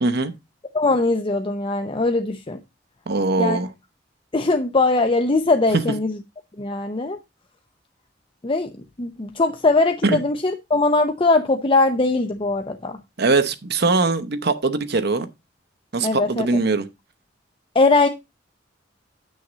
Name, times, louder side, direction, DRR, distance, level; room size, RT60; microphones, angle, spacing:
voice 1, 0.0-0.3 3.1-3.7 10.0-10.2 13.2-15.3 15.9-16.9, right 3 dB, 60° right, 0.8 m, -21 dB
voice 2, 0.7-2.6 3.4-3.6 4.3-6.2 6.6-7.2 8.4-8.7 9.0-13.0 16.0-16.5 17.7-18.1, left 3 dB, 30° left, 0.7 m, -20 dB
9.3 x 6.4 x 4.0 m
head